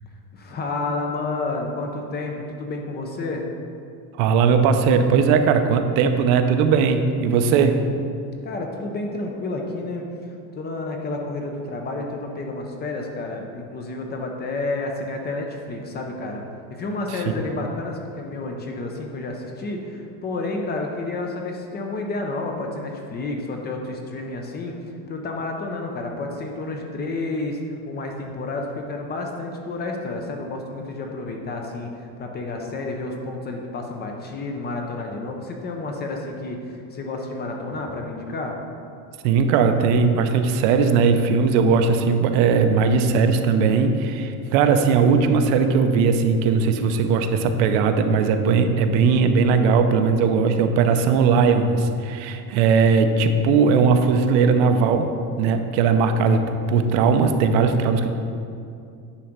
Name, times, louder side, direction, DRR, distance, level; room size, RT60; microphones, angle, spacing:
voice 1, 0.3-3.5 8.4-10.1 10.6-16.4 16.7-24.8 25.1-27.6 27.9-38.6, left 2 dB, 25° left, 2 dB, 0.5 m, -30 dB
voice 2, 4.2-7.8 39.2-55.1 55.4-58.1, right 5 dB, 70° right, 7 dB, 0.7 m, -19 dB
9.8 x 3.8 x 5.9 m, 2.5 s
cardioid pair, 165°, 43 cm